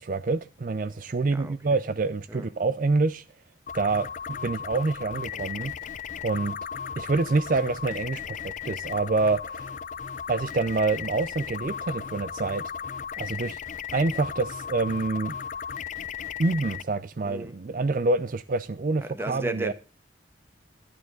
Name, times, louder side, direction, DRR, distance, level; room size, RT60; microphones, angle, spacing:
voice 1, 0.0-3.2 3.7-5.7 6.2-6.6 7.0-9.7 10.3-12.6 13.2-13.6 13.9-15.3 16.4-19.7, right 3 dB, 45° right, 0.5 m, -27 dB
voice 2, 1.3-1.9 2.3-2.5 5.3-5.5 17.2-18.0 19.0-19.7, right 2 dB, 10° right, 1.2 m, -36 dB
sound 1, 3.7-16.8, left 7 dB, 40° left, 0.5 m, -36 dB
12.0 x 11.0 x 3.8 m
head